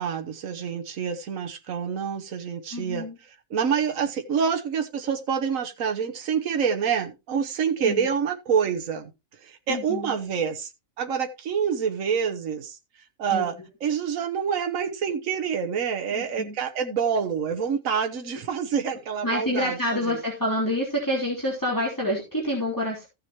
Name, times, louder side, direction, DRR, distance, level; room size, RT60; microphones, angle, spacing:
voice 1, 0.0-3.1 3.5-9.1 9.4-10.7 11.0-12.8 13.2-13.5 13.8-20.2, right 7 dB, 75° right, 1.4 m, -27 dB
voice 2, 2.7-3.2 7.8-8.1 9.7-10.2 13.3-13.5 16.1-16.5 19.2-23.1, left 1 dB, 15° left, 3.2 m, -27 dB
14.5 x 7.5 x 3.0 m
omnidirectional pair, 1.4 m